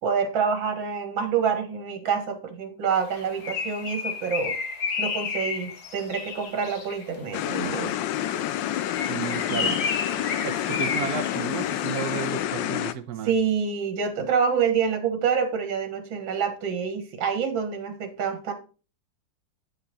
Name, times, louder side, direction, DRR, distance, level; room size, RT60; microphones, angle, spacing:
voice 1, 0.0-4.6 5.0-7.9 9.5-9.7 13.2-18.5, right 6 dB, 80° right, 2.2 m, -27 dB
Bird, 3.1-7.2 8.8-12.3, left 5 dB, 55° left, 1.8 m, -32 dB
sound 1, 7.3-12.9, left 12 dB, 80° left, 1.3 m, -28 dB
voice 2, 9.1-9.9 10.1-13.3, right 7 dB, 60° right, 1.3 m, -33 dB
9.2 x 5.8 x 4.2 m
omnidirectional pair, 2.1 m